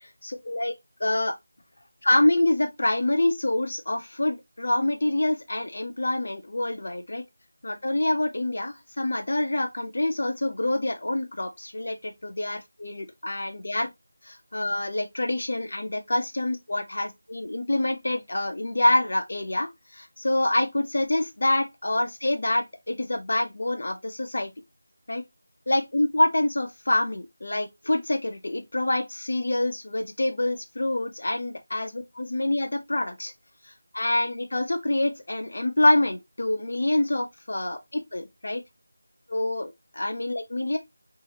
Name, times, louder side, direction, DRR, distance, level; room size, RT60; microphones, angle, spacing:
voice 1, 1.0-1.4 2.0-7.2 7.6-13.9 14.2-24.5 25.1-25.2 25.7-33.3 33.9-38.6 39.3-40.8, left 1 dB, 50° left, 0.6 m, -26 dB
3.2 x 2.7 x 2.7 m
figure-of-eight pair, 180°, 0 cm